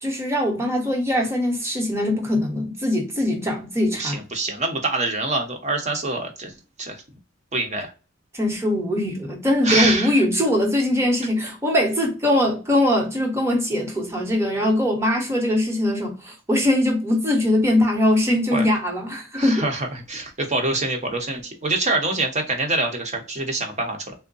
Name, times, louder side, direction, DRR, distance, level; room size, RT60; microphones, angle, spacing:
voice 1, 0.0-4.2 8.3-19.6, left 1 dB, 15° right, 1.0 m, -21 dB
voice 2, 4.0-6.5 6.8-7.0 7.5-7.9 9.6-10.2 18.5-18.7 19.4-24.1, right 2 dB, 35° right, 0.9 m, -25 dB
3.5 x 2.1 x 3.9 m
head